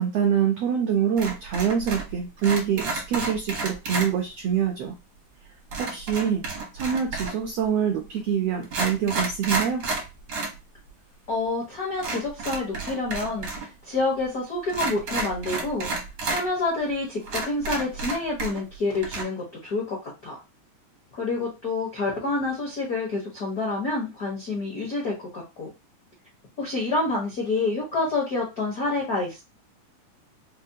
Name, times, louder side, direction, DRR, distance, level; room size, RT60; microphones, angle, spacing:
voice 1, 0.0-4.9 5.8-9.9, right 8 dB, 85° right, 1 dB, 1.4 m, -25 dB
sound 1, 1.2-2.1 2.4-4.1 5.7-7.5 8.2-8.3 8.6-10.6 10.9-11.0 12.0-13.7 13.9-14.0 14.7-16.4 16.9-17.0 17.3-18.7 19.0-19.2, right 3 dB, 70° right, 0.9 m, -31 dB
voice 2, 11.3-15.9 16.3-20.3 21.1-25.7 26.6-29.4, left 3 dB, 80° left, -3 dB, 0.8 m, -28 dB
5.0 x 2.3 x 2.7 m, 0.25 s
omnidirectional pair, 3.6 m